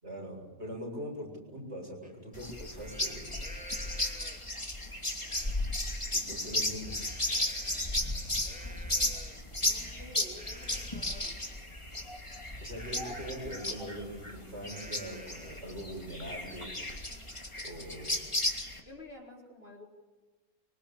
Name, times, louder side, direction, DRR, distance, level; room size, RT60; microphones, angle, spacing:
voice 1, 0.0-3.3 6.1-7.0 12.6-16.8 17.6-18.3, equal, 50° right, -1 dB, 7.6 m, -42 dB
Livestock farm animals working animals, 2.0-2.1 2.5-4.6 5.2-5.6 6.0-11.6 12.7-15.8 16.2-16.3 16.7-19.0, equal, 5° right, 2.8 m, -52 dB
sound 1, 2.3-18.8, left 1 dB, 20° left, 2.9 m, -35 dB
voice 2, 3.8-4.3 9.6-11.4 18.2-18.4 18.8-19.8, left 1 dB, 40° left, -1 dB, 4.7 m, -51 dB
25.0 x 25.0 x 8.8 m, 1.3 s
omnidirectional pair, 1.5 m